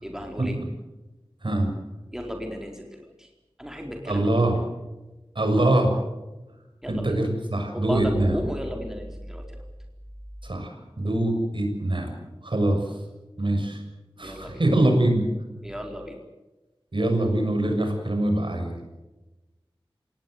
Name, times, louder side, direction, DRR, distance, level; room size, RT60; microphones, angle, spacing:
voice 1, 0.0-0.6 2.1-3.3 3.6-4.5 6.8-7.2 7.7-9.6 14.2-14.6 15.6-16.2, equal, 5° right, 2 dB, 4.3 m, -34 dB
voice 2, 4.1-4.6 5.3-5.9 6.9-8.4 10.4-12.1 12.4-12.9 13.4-13.8 14.2-15.2 16.9-18.7, right 1 dB, 60° right, 4 dB, 6.5 m, -23 dB
26.0 x 19.0 x 8.1 m, 1.1 s
wide cardioid pair, 60°, 10 cm